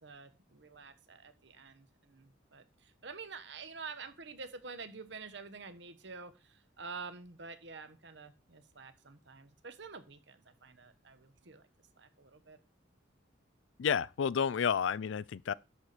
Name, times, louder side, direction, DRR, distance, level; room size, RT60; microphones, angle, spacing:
voice 1, 0.0-11.7 12.0-12.6, right 4 dB, 65° right, 1.2 m, -48 dB
voice 2, 13.8-15.5, left 7 dB, 75° left, 0.4 m, -30 dB
10.5 x 4.3 x 6.7 m
head